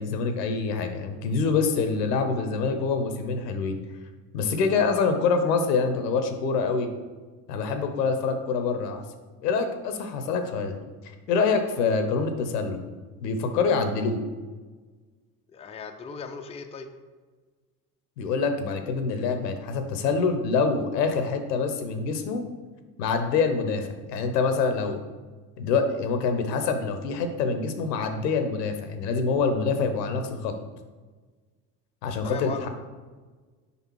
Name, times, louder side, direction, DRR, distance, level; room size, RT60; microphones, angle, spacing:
voice 1, 0.0-3.8 4.3-6.9 7.5-9.0 9.4-10.7 11.3-12.8 13.2-14.2 18.2-22.4 23.0-25.0 25.6-30.5 32.0-32.7, left 4 dB, 80° left, 7 dB, 0.9 m, -25 dB
voice 2, 15.5-16.9 32.2-32.7, left 5 dB, 15° left, 5 dB, 0.5 m, -37 dB
5.0 x 4.1 x 4.6 m, 1.4 s
hypercardioid pair, 65°, 48 cm